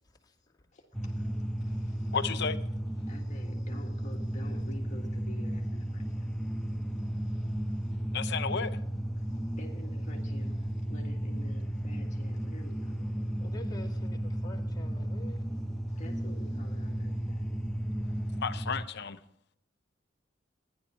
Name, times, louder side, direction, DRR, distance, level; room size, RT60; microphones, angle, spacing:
voice 1, 0.7-2.2 3.1-7.9 9.2-13.3 15.9-17.5, equal, 40° left, 1.7 m, -51 dB
sound 1, 0.9-18.9, right 1 dB, ahead, 0.6 m, -34 dB
voice 2, 2.1-2.6 8.1-8.8 18.3-19.2, left 6 dB, 60° left, 0.7 m, -32 dB
voice 3, 13.4-15.4, left 2 dB, 20° left, 2.4 m, -47 dB
14.0 x 10.5 x 4.4 m
head